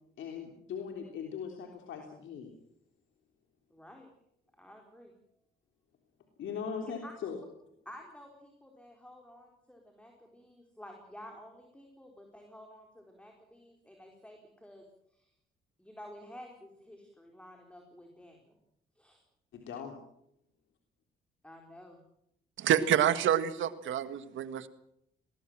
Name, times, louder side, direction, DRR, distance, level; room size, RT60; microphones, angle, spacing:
voice 1, 0.2-2.5 6.4-7.4 19.5-20.0, left 6 dB, 75° left, 2 dB, 3.5 m, -39 dB
voice 2, 3.7-4.1 4.6-5.1 7.0-7.1 7.8-15.3 15.8-18.6 18.9-19.2 21.4-22.0, equal, 5° left, 2 dB, 4.4 m, -52 dB
voice 3, 22.6-24.7, right 10 dB, 75° right, 12 dB, 1.8 m, -27 dB
21.5 x 19.0 x 7.6 m, 0.75 s
cardioid pair, 90°, 20 cm